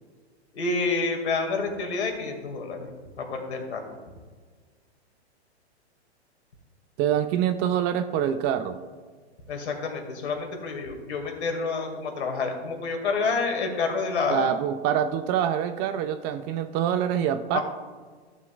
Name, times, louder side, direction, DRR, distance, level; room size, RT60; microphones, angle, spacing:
voice 1, 0.5-2.9 3.2-3.9 9.5-14.6 17.5-17.6, left 4 dB, 75° left, 3 dB, 2.4 m, -28 dB
voice 2, 7.0-8.8 14.3-17.6, right 9 dB, 30° right, 10 dB, 0.5 m, -25 dB
14.5 x 7.4 x 2.5 m, 1.5 s
hypercardioid pair, 125°, 33 cm